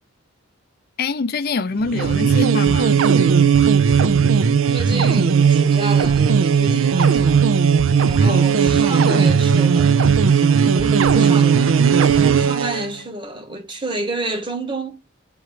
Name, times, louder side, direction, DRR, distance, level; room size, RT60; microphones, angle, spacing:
voice 1, 1.0-3.0 8.1-8.5, left 4 dB, 50° left, 0.5 m, -25 dB
sound 1, 1.8-12.9, right 6 dB, 75° right, 0.5 m, -16 dB
voice 2, 4.4-7.5 8.0-10.1 10.7-11.7 12.1-15.0, right 2 dB, 25° right, 1.1 m, -29 dB
7.7 x 3.1 x 4.9 m
head